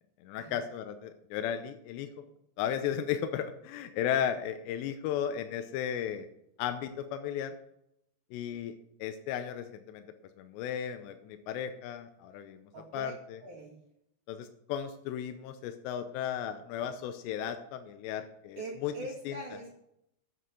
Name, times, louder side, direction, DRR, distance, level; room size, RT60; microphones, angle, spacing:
voice 1, 0.2-2.1 2.6-6.3 6.6-7.5 8.3-10.0 10.4-13.4 14.3-18.9 19.3-19.4, left 9 dB, 90° left, 8 dB, 2.9 m, -35 dB
voice 2, 12.7-13.1 13.4-13.8 18.6-19.7, right 2 dB, 60° right, -4 dB, 2.6 m, -42 dB
8.0 x 7.6 x 6.7 m, 0.79 s
omnidirectional pair, 4.8 m